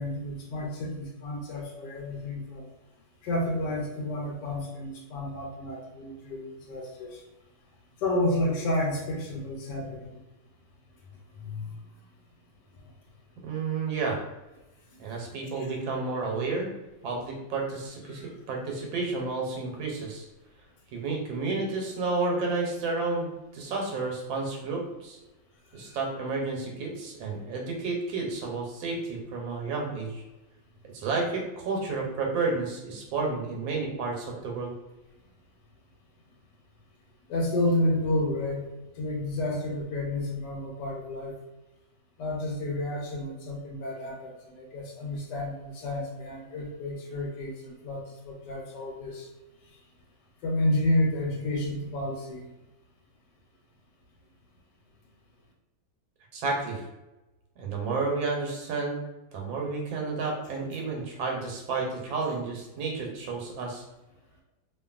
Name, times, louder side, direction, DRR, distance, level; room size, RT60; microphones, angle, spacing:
voice 1, 0.0-2.7 3.2-7.2 8.0-10.2 11.3-11.7 15.6-15.7 18.1-18.3 25.7-26.0 37.3-38.7 39.0-41.3 42.2-49.3 50.4-52.5, left 1 dB, 75° left, -1 dB, 1.2 m, -30 dB
voice 2, 13.4-14.2 15.0-16.7 17.0-20.3 20.9-25.2 25.7-30.2 30.9-34.7 56.3-56.8 57.6-59.0 59.3-63.8, right 3 dB, 85° right, 0 dB, 1.4 m, -31 dB
2.8 x 2.5 x 2.3 m, 1.0 s
omnidirectional pair, 2.1 m